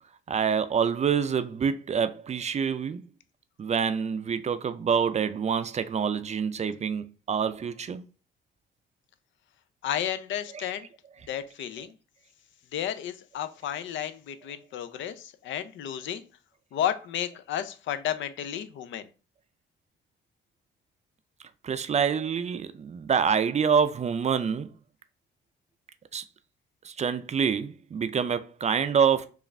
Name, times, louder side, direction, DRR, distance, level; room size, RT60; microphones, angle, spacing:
voice 1, 0.3-3.0 3.6-8.0 10.5-10.6 21.6-24.7 26.1-26.2 26.8-29.3, right 7 dB, 35° right, 0.4 m, -26 dB
voice 2, 9.8-10.9 11.3-11.9 12.7-16.2 16.7-19.1, left 10 dB, 75° left, 0.5 m, -32 dB
4.8 x 2.4 x 3.3 m
cardioid pair, 90°, 20 cm